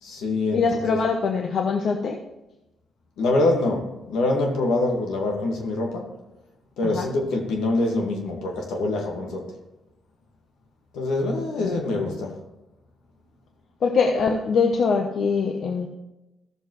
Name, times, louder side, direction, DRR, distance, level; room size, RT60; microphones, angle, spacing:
voice 1, 0.0-1.0 3.2-6.1 6.8-9.5 10.9-12.4, left 2 dB, 85° left, 1.9 m, -25 dB
voice 2, 0.5-2.2 6.8-7.1 11.6-12.3 13.8-15.9, left 5 dB, 65° left, 0.9 m, -23 dB
14.5 x 6.9 x 3.2 m
supercardioid pair, 60°, 0 cm